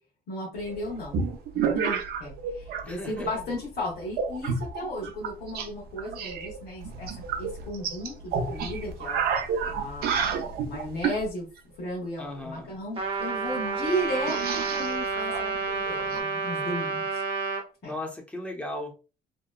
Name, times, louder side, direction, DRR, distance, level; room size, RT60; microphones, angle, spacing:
voice 1, 0.3-1.2 1.5-7.1 7.4-9.2 9.7-11.5 11.8-17.2 17.8-18.0, equal, 70° left, 1.0 m, -35 dB
sound 1, 0.7-2.8 3.1-3.6 4.1-5.7 6.0-11.2 12.9-13.0 13.2-13.3 13.7-16.2, right 6 dB, 65° right, 0.5 m, -30 dB
voice 2, 2.8-3.3 12.2-12.8 17.8-18.9, left 1 dB, 5° left, 0.6 m, -36 dB
Trumpet, 13.0-17.6, right 4 dB, 35° right, 0.8 m, -30 dB
2.8 x 2.2 x 2.2 m
cardioid pair, 110°, 17 cm